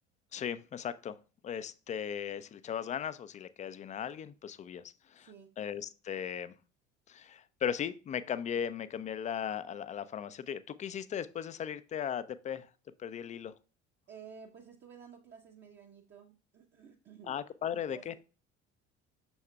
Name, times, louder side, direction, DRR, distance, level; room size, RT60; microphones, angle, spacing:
voice 1, 0.3-1.1 1.4-4.8 5.1-5.3 5.6-6.5 7.1-12.7 13.0-13.5 17.3-18.2, left 8 dB, 20° left, 15 dB, 0.4 m, -37 dB
voice 2, 14.1-17.4 17.6-18.2, right 7 dB, 30° right, 1 dB, 0.8 m, -53 dB
6.9 x 6.3 x 2.3 m, 0.35 s
figure-of-eight pair, 60°, 36 cm